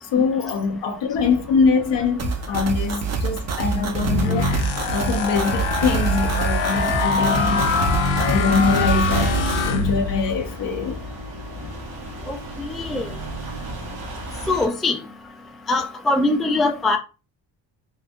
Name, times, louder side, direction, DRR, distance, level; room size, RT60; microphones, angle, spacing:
voice 1, 0.0-4.6 4.9-7.7 8.1-11.0, left 5 dB, 65° left, 0.9 m, -23 dB
sound 1, 1.1-14.7, equal, 85° right, 1.4 m, -36 dB
sound 2, 2.2-9.7, right 5 dB, 35° right, 0.7 m, -26 dB
sound 3, 3.9-10.4, left 4 dB, 90° left, 0.7 m, -23 dB
voice 2, 12.3-13.1 14.5-15.0 15.7-17.0, left 2 dB, ahead, 0.4 m, -22 dB
3.8 x 2.7 x 2.2 m
cardioid pair, 75°, 46 cm